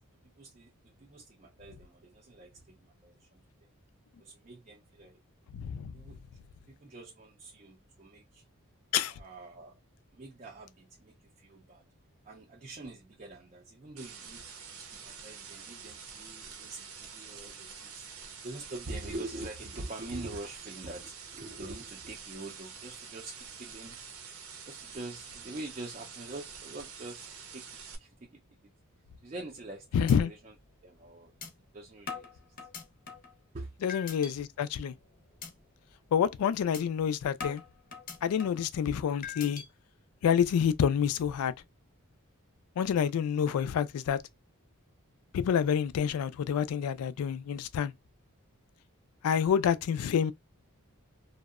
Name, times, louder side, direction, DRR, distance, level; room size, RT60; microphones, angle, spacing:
voice 1, 0.4-3.4 4.2-5.2 5.9-6.2 6.7-8.4 9.1-9.7 10.1-11.9 12.2-18.1 18.4-24.0 24.3-24.4 24.7-27.3 27.5-27.6 28.0-28.4 29.2-30.5 30.8-31.3 31.7-32.3 33.5-33.7, right 2 dB, 30° right, 0.4 m, -45 dB
voice 2, 5.6-5.9 8.9-9.1 29.9-30.3 33.8-34.9 36.1-37.6 38.2-39.6 40.2-41.5 42.8-44.2 45.3-47.9 49.2-50.3, left 8 dB, 80° left, 0.3 m, -28 dB
sound 1, 14.0-28.0, right 6 dB, 75° right, 0.6 m, -47 dB
sound 2, 29.4-29.7 30.1-30.2 30.6-30.7 31.4-31.5 32.1-33.3 33.9-34.3 34.8-35.0 35.4-35.5 35.9-36.1 36.7-36.8 37.4-38.7 39.2-39.7, left 6 dB, 40° left, 0.6 m, -41 dB
2.7 x 2.0 x 2.3 m
head